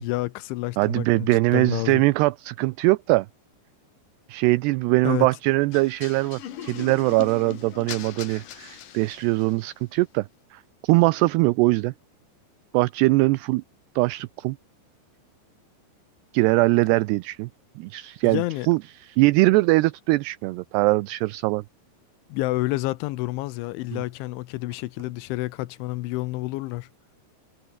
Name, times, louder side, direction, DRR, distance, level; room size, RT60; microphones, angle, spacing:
voice 1, 0.0-2.0 5.0-5.3 18.2-18.7 22.3-26.9, left 19 dB, 85° left, 3.3 m, -29 dB
voice 2, 0.8-3.3 4.3-11.9 12.7-13.6 14.0-14.6 16.3-17.5 17.8-21.6 23.9-24.0, right 22 dB, 80° right, 2.5 m, -22 dB
sound 1, 5.7-9.7, left 10 dB, 55° left, 3.0 m, -39 dB
omnidirectional pair, 5.3 m